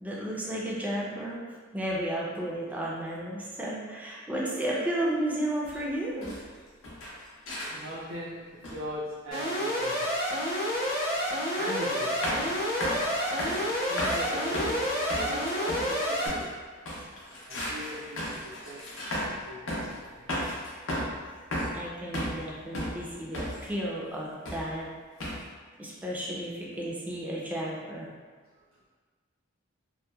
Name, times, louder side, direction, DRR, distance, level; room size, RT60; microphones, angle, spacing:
voice 1, 0.0-1.4 1.7-6.3 21.7-24.9 25.8-28.1, right 1 dB, 10° right, -5 dB, 0.4 m, -33 dB
sound 1, 5.6-5.8 6.2-6.5 6.8-8.0 8.6-8.9 9.3-9.6 10.8-10.9 12.2-12.5 12.8-13.1 13.4-16.5 16.9-19.4 19.7-20.0 20.3-21.2 21.5-22.5 22.7-23.7 24.5-24.8 25.2-25.5, equal, 85° left, 0.6 m, -34 dB
voice 2, 7.7-10.3 11.6-12.5 13.9-16.5 17.5-18.8 19.2-20.5, right 1 dB, 70° right, -8 dB, 0.4 m, -40 dB
Alarm, 9.3-16.3, equal, 45° left, 0.8 m, -29 dB
2.7 x 2.1 x 2.2 m, 1.5 s
head